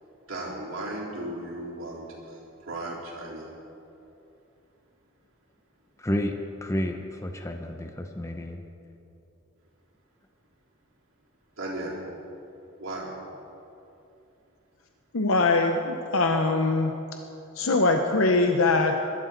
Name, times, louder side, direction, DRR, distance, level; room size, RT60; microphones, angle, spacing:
voice 1, 0.3-3.5 11.6-12.1 12.8-13.1, right 1 dB, 75° right, -5 dB, 3.8 m, -36 dB
voice 2, 6.0-6.3 6.6-8.6, equal, 15° left, 5 dB, 0.7 m, -30 dB
voice 3, 15.1-16.9 17.6-19.1, left 3 dB, 85° left, 4 dB, 0.8 m, -22 dB
21.5 x 12.5 x 4.0 m, 2.9 s
head